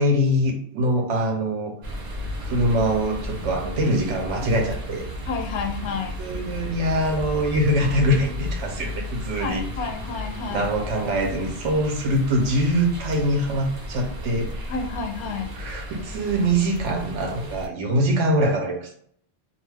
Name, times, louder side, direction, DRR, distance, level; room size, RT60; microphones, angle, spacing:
voice 1, 0.0-1.7 2.4-5.1 6.2-9.6 10.5-14.7 15.5-18.9, equal, 90° right, 2 dB, 1.0 m, -23 dB
sound 1, 1.8-17.7, left 1 dB, 65° right, 1.0 m, -34 dB
voice 2, 5.3-6.2 9.4-10.7 14.7-15.5, left 5 dB, 75° left, 4 dB, 0.9 m, -30 dB
2.6 x 2.2 x 3.2 m, 0.63 s
omnidirectional pair, 1.2 m